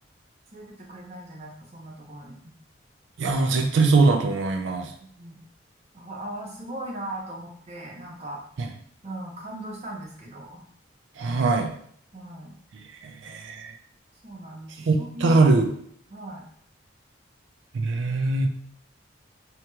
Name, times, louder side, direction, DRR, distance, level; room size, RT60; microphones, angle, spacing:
voice 1, 0.5-2.4 5.0-5.4 5.9-8.4 9.0-10.7 12.1-12.6 14.2-15.4 16.1-16.5, right 1 dB, 35° right, -2 dB, 0.6 m, -38 dB
voice 2, 3.2-4.9 8.6-8.7 11.2-11.7 13.0-13.7 14.9-15.7 17.7-18.5, right 3 dB, 70° right, 3 dB, 0.4 m, -22 dB
2.9 x 2.8 x 2.3 m, 0.64 s
head